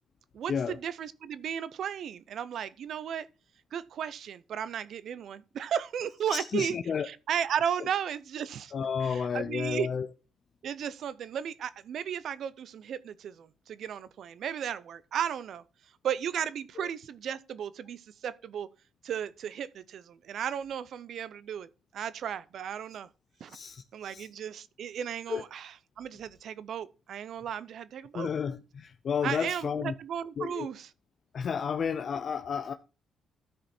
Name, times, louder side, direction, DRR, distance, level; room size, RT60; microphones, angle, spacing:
voice 1, 0.3-3.3 3.7-6.8 7.0-8.7 9.0-9.9 10.6-15.6 16.0-18.7 19.0-23.1 23.4-23.6 23.9-28.3 29.2-30.9, right 8 dB, 65° right, 0.6 m, -35 dB
voice 2, 6.5-7.1 8.7-10.1 16.8-16.9 23.5-23.8 24.1-24.3 25.3-25.4 28.1-29.9 30.4-30.7 31.3-32.7, left 6 dB, 50° left, 0.5 m, -31 dB
13.0 x 5.1 x 4.3 m
cardioid pair, 90°, 0 cm